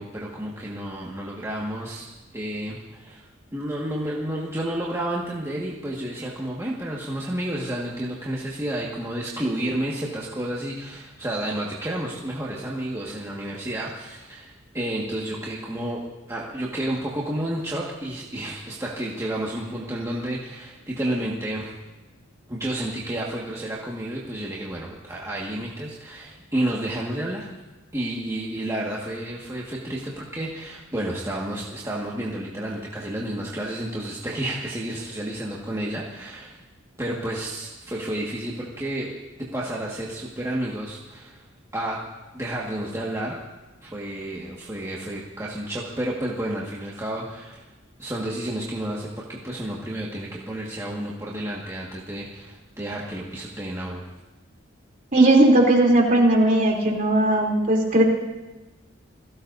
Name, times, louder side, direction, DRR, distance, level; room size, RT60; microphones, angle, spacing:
voice 1, 0.0-2.0 2.3-3.2 3.5-16.0 16.3-21.8 22.5-27.5 27.9-36.6 37.0-39.1 39.4-41.4 41.7-42.0 42.3-43.4 43.8-47.7 48.0-54.1, right 1 dB, 15° right, -5 dB, 1.8 m, -31 dB
voice 2, 55.1-58.0, right 1 dB, 40° right, -1 dB, 3.2 m, -17 dB
28.5 x 17.0 x 2.7 m, 1.1 s
head